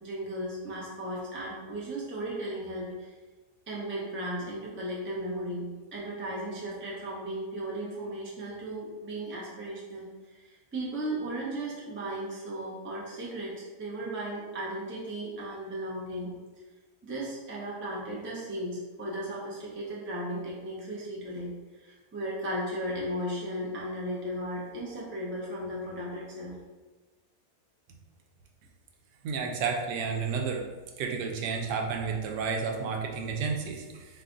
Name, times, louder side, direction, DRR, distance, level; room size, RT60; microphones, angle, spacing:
voice 1, 0.0-3.1 3.7-10.1 10.3-16.3 17.0-21.5 21.8-26.5, right 1 dB, 15° right, -4 dB, 0.4 m, -36 dB
voice 2, 29.2-30.7 31.0-34.1, right 5 dB, 85° right, 2 dB, 1.2 m, -31 dB
4.1 x 2.3 x 3.8 m, 1.3 s
omnidirectional pair, 1.7 m